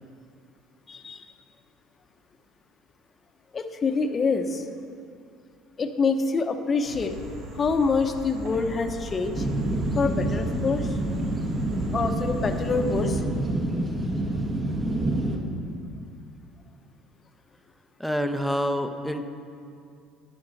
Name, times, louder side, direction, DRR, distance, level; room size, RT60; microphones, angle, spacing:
voice 1, 0.9-1.3 3.5-4.7 5.8-7.2 7.5-9.5 10.0-11.0 11.9-13.2, left 4 dB, 35° left, 7 dB, 0.9 m, -26 dB
sound 1, 6.8-13.2, right 1 dB, 70° right, 1.9 m, -38 dB
sound 2, 9.3-15.4, right 1 dB, 30° right, 1.6 m, -27 dB
voice 2, 18.0-19.2, equal, ahead, 6 dB, 0.8 m, -27 dB
12.5 x 8.7 x 4.1 m, 2.4 s
hypercardioid pair, 75°, 0 cm